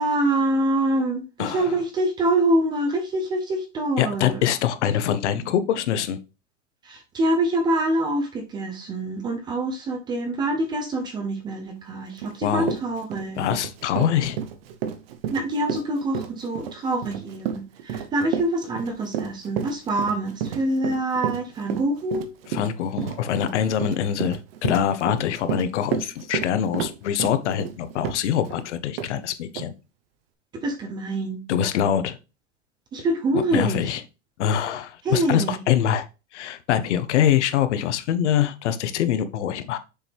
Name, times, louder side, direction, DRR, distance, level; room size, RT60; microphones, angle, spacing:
voice 1, 0.0-4.4 6.8-13.4 15.3-22.3 30.6-31.4 32.9-33.8 35.0-35.6, right 1 dB, 10° right, 0.6 m, -25 dB
voice 2, 1.4-1.8 4.0-6.2 12.4-12.7 13.4-14.4 22.5-29.7 31.5-32.2 33.5-34.0 34.4-36.0 36.3-39.8, left 9 dB, 70° left, 1.0 m, -24 dB
Run, 12.2-12.3 12.6-28.6 29.0-29.1 29.6-29.7, right 8 dB, 55° right, 1.0 m, -31 dB
6.9 x 4.5 x 3.4 m
supercardioid pair, 165°, 36 cm